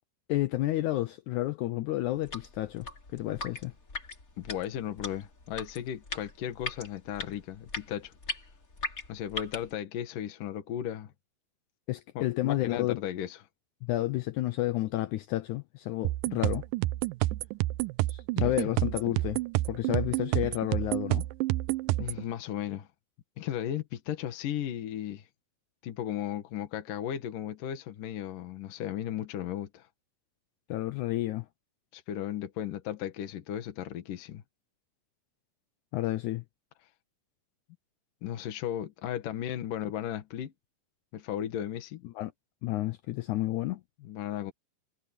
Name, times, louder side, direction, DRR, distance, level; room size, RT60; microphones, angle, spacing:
voice 1, 0.3-2.9 3.1-3.7 11.9-13.0 13.8-16.6 18.1-19.4 19.7-21.3 30.7-31.5 35.9-36.4 42.1-42.3 42.6-43.8, left 16 dB, 80° left, 1.7 m, -30 dB
sound 1, 2.2-9.7, left 3 dB, 25° left, 3.4 m, -40 dB
voice 2, 4.4-8.1 9.1-11.1 12.2-13.4 18.4-18.7 22.0-22.9 23.4-25.2 25.8-29.9 31.9-34.4 38.2-40.5 41.1-42.0 44.0-44.5, left 10 dB, 65° left, 3.1 m, -35 dB
sound 2, 16.0-22.2, right 18 dB, 80° right, 2.1 m, -29 dB
omnidirectional pair, 4.2 m